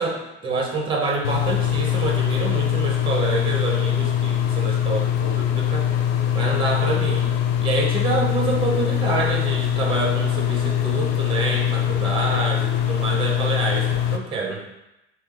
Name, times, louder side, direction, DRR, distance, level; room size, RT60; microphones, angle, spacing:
voice 1, 0.0-5.9 6.3-7.3 7.6-14.6, right 3 dB, 15° right, 0 dB, 0.7 m, -27 dB
sound 1, 1.2-14.2, left 10 dB, 60° left, 0.5 m, -22 dB
3.3 x 3.0 x 3.3 m, 0.92 s
hypercardioid pair, 80°, 35 cm